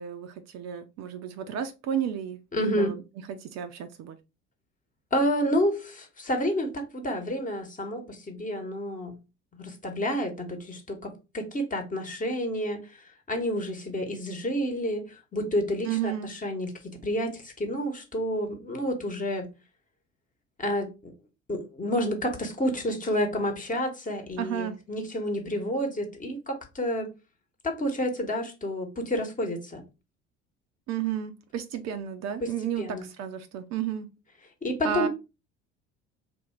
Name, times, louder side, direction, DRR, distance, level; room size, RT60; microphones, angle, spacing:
voice 1, 0.0-2.4 2.8-3.0 3.3-4.2 15.9-16.3 24.4-24.7 30.9-34.1 34.8-35.1, right 9 dB, 45° right, 0.6 m, -32 dB
voice 2, 2.5-2.9 5.1-9.2 9.5-19.5 20.6-21.1 21.5-27.1 27.6-29.8 32.4-33.1 34.6-35.1, equal, 20° left, 1.1 m, -29 dB
3.4 x 2.6 x 4.3 m
figure-of-eight pair, 60°, 37 cm